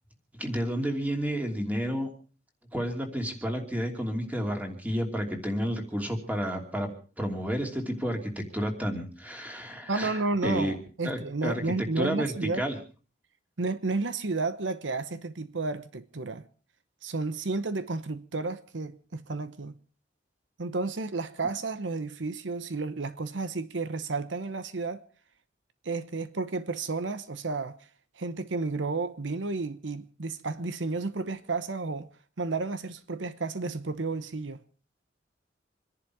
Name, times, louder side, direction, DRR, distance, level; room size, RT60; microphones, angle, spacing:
voice 1, 0.4-2.1 2.7-6.9 7.2-10.8 11.0-12.8, equal, 10° right, 2.9 m, -31 dB
voice 2, 9.9-12.6 13.6-16.5 17.0-19.7 20.6-25.0 25.8-27.8 28.2-32.1 32.4-34.6, right 3 dB, 80° right, 0.9 m, -32 dB
27.0 x 11.0 x 4.7 m
head